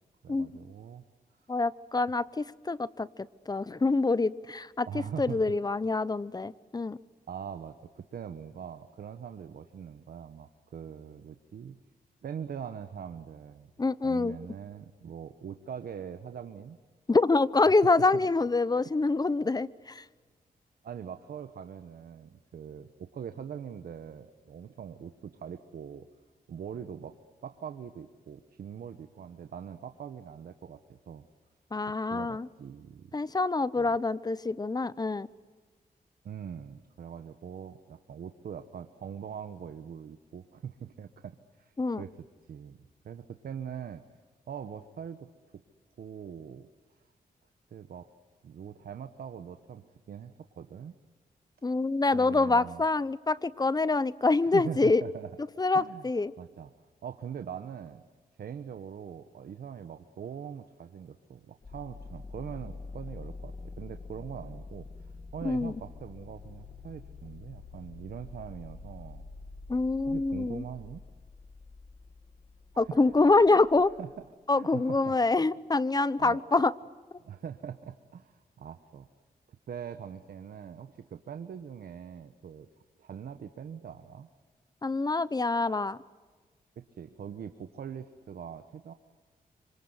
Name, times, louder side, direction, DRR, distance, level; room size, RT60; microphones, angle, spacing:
voice 1, 0.2-1.0 4.9-5.6 7.3-11.8 12.2-13.7 14.0-16.8 18.1-18.2 18.8-18.9 20.8-26.1 26.5-27.1 27.4-31.2 31.9-33.1 33.8-33.9 36.2-42.8 43.0-44.0 44.5-45.3 45.5-45.6 46.0-46.7 47.7-48.1 48.4-50.9 52.1-52.8 54.4-55.3 55.7-56.1 56.4-56.7 57.0-58.0 58.4-69.2 70.1-71.0 72.7-73.1 74.0-75.2 76.2-76.4 77.2-79.1 79.7-82.7 83.0-84.3 86.8-88.9, right 8 dB, 75° right, 9 dB, 1.2 m, -42 dB
voice 2, 1.5-3.1 3.5-4.9 5.2-7.0 13.8-14.4 17.1-20.0 31.7-32.5 33.1-35.3 41.8-42.0 51.6-55.0 55.6-56.3 65.4-65.7 69.7-70.6 72.8-73.9 74.5-76.7 84.8-86.0, left 3 dB, 25° left, 17 dB, 0.9 m, -26 dB
sound 1, 61.6-74.3, left 3 dB, 40° left, 2.6 m, -46 dB
27.0 x 26.0 x 8.1 m, 1.4 s
cardioid pair, 80°, 16 cm